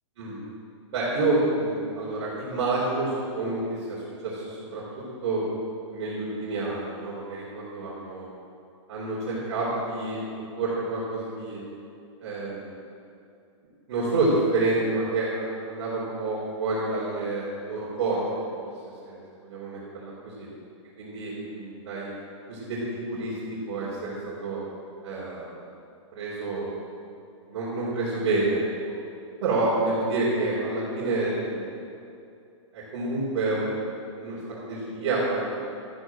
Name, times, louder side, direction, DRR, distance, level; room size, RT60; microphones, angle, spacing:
voice 1, 0.9-3.6 3.9-4.0 4.2-5.4 5.9-8.3 8.9-10.2 10.5-11.6 12.2-12.7 13.9-18.2 18.5-18.6 19.0-20.5 21.0-22.1 22.5-22.8 23.1-23.4 23.7-24.6 25.0-25.5 26.1-26.7 27.5-28.7 29.4-31.8 32.7-35.5, right 2 dB, 55° right, -8 dB, 4.4 m, -28 dB
13.5 x 11.5 x 6.5 m, 2.6 s
hypercardioid pair, 145°, 16 cm